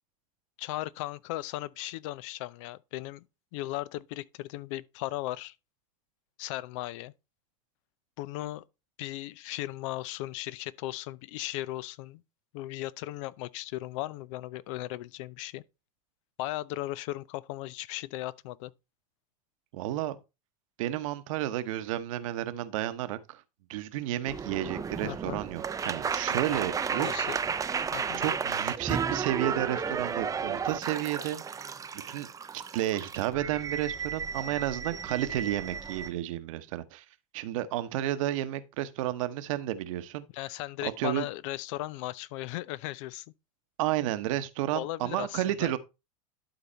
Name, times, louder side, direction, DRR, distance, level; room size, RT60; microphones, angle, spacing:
voice 1, 0.6-3.2 3.5-5.5 6.4-7.1 8.2-8.6 9.0-12.2 12.5-15.6 16.4-18.7 25.0-25.4 27.0-27.4 27.9-28.2 40.3-43.3 44.7-45.7, left 17 dB, 60° left, 0.6 m, -37 dB
voice 2, 19.7-20.2 20.8-23.4 23.7-27.1 28.2-31.4 32.1-32.3 32.7-37.0 37.3-40.3 40.8-41.2 43.8-45.8, right 13 dB, 70° right, 1.0 m, -31 dB
sound 1, 24.3-36.1, right 6 dB, 20° right, 0.6 m, -33 dB
12.0 x 4.1 x 4.3 m
hypercardioid pair, 80°, 18 cm